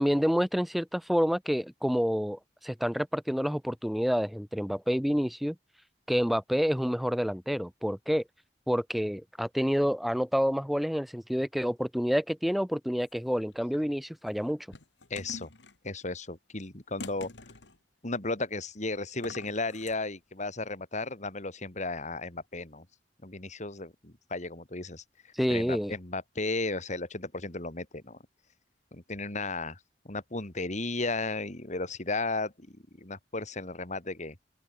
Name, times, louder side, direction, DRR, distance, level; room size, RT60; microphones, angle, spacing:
voice 1, 0.0-5.6 6.1-8.2 8.7-14.7 25.3-26.0, equal, ahead, 0.5 m, -28 dB
sound 1, 13.0-13.6 14.3-15.8 17.0-17.8 19.1-20.0, left 3 dB, 85° left, 2.7 m, -46 dB
voice 2, 15.1-15.5 15.8-17.3 18.0-22.8 23.2-25.0 25.5-28.2 28.9-29.8 30.0-34.3, left 3 dB, 45° left, 3.4 m, -34 dB
open air
head